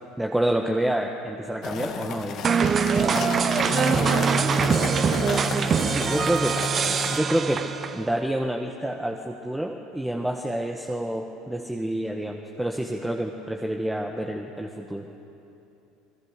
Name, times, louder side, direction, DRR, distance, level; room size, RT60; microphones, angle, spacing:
voice 1, 0.2-2.4 3.9-4.8 5.4-6.6 7.1-7.6 7.9-15.1, right 1 dB, 5° right, 3 dB, 1.6 m, -28 dB
sound 1, 1.6-7.2, left 7 dB, 50° left, 1.9 m, -33 dB
sound 2, 2.4-8.1, right 6 dB, 35° right, 1.1 m, -23 dB
29.5 x 21.5 x 6.8 m, 2.9 s
figure-of-eight pair, 70°, 0 cm